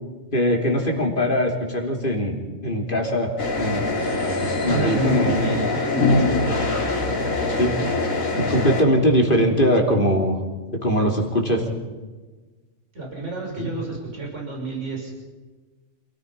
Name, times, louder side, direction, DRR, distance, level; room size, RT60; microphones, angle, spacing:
voice 1, 0.3-2.4 2.6-3.3 3.6-3.9 4.6-5.3 7.6-7.8 8.4-10.4 10.8-11.6 13.6-13.7, equal, 40° left, 1 dB, 3.5 m, -21 dB
sound 1, 3.4-8.8, left 2 dB, 75° left, 3.9 m, -23 dB
voice 2, 4.6-6.7 12.9-15.1, right 3 dB, 60° right, -1 dB, 5.9 m, -28 dB
28.0 x 18.0 x 5.5 m, 1.3 s
omnidirectional pair, 1.4 m